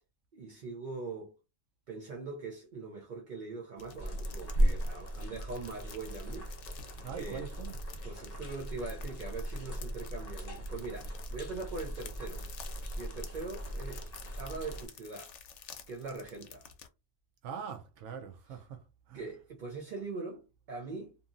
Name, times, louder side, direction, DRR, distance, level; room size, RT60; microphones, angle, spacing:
voice 1, 0.3-1.4 1.9-7.5 8.0-12.4 13.0-14.1 14.4-15.3 15.9-16.7 19.1-21.2, right 3 dB, 50° right, 0.6 m, -42 dB
sound 1, 3.8-16.9, left 7 dB, 75° left, 0.9 m, -52 dB
sound 2, 4.0-14.9, right 1 dB, 35° left, 1.1 m, -36 dB
voice 2, 7.0-7.8 17.4-19.2, right 6 dB, 80° right, 0.9 m, -43 dB
2.7 x 2.6 x 2.4 m
omnidirectional pair, 1.2 m